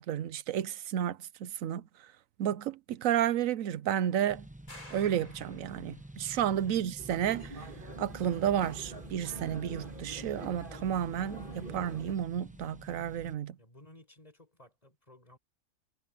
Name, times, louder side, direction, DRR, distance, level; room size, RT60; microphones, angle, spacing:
voice 1, 0.0-1.8 2.4-4.5 4.9-7.7 8.0-13.6, right 10 dB, 75° right, 1.1 m, -31 dB
sound 1, 4.3-13.3, right 1 dB, 5° right, 0.8 m, -49 dB
sound 2, 4.7-6.2, left 2 dB, 85° left, 7.5 m, -52 dB
sound 3, 7.0-12.1, right 3 dB, 40° right, 2.5 m, -44 dB
voice 2, 13.6-15.4, left 1 dB, 30° left, 6.0 m, -57 dB
omnidirectional pair, 1.4 m